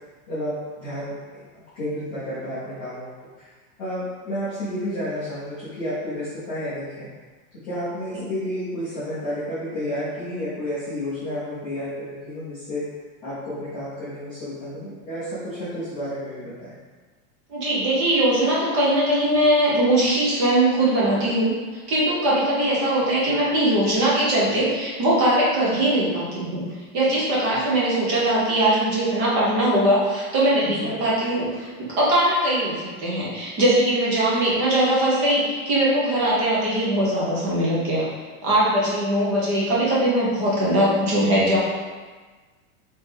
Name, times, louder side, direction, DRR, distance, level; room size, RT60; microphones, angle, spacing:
voice 1, 0.3-3.1 3.4-3.5 3.8-7.1 7.6-12.8 13.2-16.8 30.7-30.9, equal, 15° left, -14 dB, 0.4 m, -31 dB
voice 2, 17.5-26.6 26.9-38.0 38.4-41.6, right 1 dB, 25° right, -6 dB, 0.9 m, -21 dB
4.0 x 2.9 x 3.2 m, 1.4 s
supercardioid pair, 170°, 44 cm